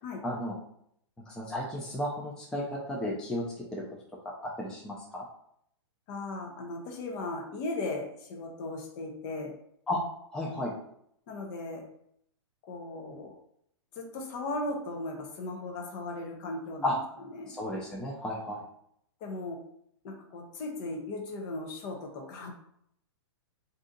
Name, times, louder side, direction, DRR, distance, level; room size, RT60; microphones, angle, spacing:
voice 1, 0.2-0.5 1.3-3.8 4.6-5.2 9.9-10.0 10.3-10.7 16.8-16.9 17.5-18.6, left 1 dB, 5° left, -3 dB, 0.4 m, -33 dB
voice 2, 6.1-9.6 11.3-11.9 12.6-13.4 14.0-17.0 17.3-17.6 19.2-19.7 20.0-22.5, left 2 dB, 40° left, 2 dB, 0.8 m, -37 dB
2.7 x 2.3 x 3.8 m, 0.71 s
hypercardioid pair, 135°, 15 cm